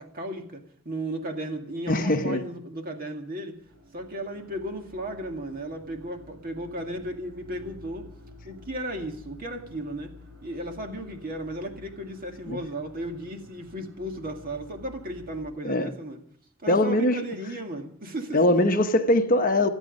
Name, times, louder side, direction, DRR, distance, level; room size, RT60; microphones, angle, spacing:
voice 1, 0.0-3.6 3.9-8.1 8.4-10.2 10.4-16.2 16.6-18.4, right 1 dB, 40° right, 4 dB, 2.1 m, -35 dB
voice 2, 1.9-2.4 12.5-12.6 15.6-15.9 16.7-17.2 18.3-19.7, left 1 dB, 40° left, 7 dB, 0.9 m, -22 dB
sound 1, 3.6-15.5, left 1 dB, 60° right, 4.6 m, -50 dB
26.0 x 9.2 x 5.3 m, 0.64 s
head